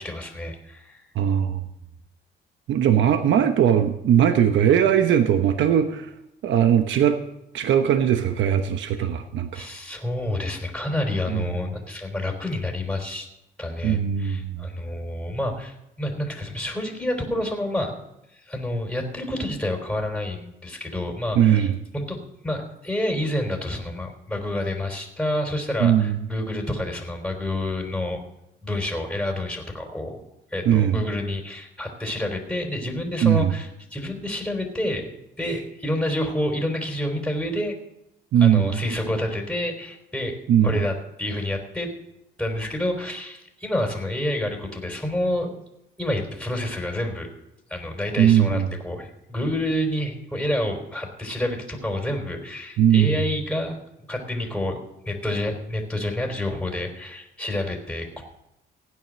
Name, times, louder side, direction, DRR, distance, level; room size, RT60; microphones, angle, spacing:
voice 1, 0.0-1.1 9.5-13.3 13.6-17.9 18.3-21.7 21.9-22.2 22.4-28.2 28.6-30.2 30.5-35.1 35.4-37.7 38.4-40.4 40.6-41.9 42.4-45.5 46.0-47.3 47.7-53.8 54.1-54.8 55.1-58.2, left 1 dB, 5° left, 2 dB, 3.7 m, -28 dB
voice 2, 1.1-1.6 2.7-6.1 6.4-7.2 7.5-9.7 11.3-11.4 13.8-14.6 21.4-21.8 25.8-26.1 30.6-31.0 33.2-33.5 38.3-38.8 40.5-40.9 48.2-48.7 52.8-53.2, right 9 dB, 75° right, 8 dB, 1.0 m, -19 dB
16.5 x 9.6 x 6.4 m, 0.85 s
cardioid pair, 90°, 20 cm